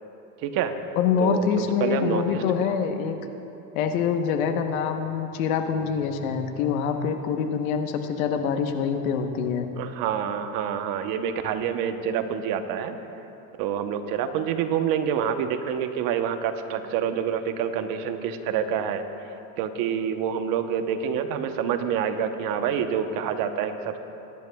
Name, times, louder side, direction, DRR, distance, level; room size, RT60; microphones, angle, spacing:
voice 1, 0.4-0.7 1.2-2.4 9.7-12.9 13.6-19.0 19.6-24.0, right 8 dB, 55° right, 8 dB, 0.9 m, -27 dB
voice 2, 1.0-3.2 3.7-9.7, left 7 dB, 80° left, 6 dB, 1.1 m, -25 dB
21.5 x 10.5 x 2.3 m, 2.9 s
supercardioid pair, 115°, 41 cm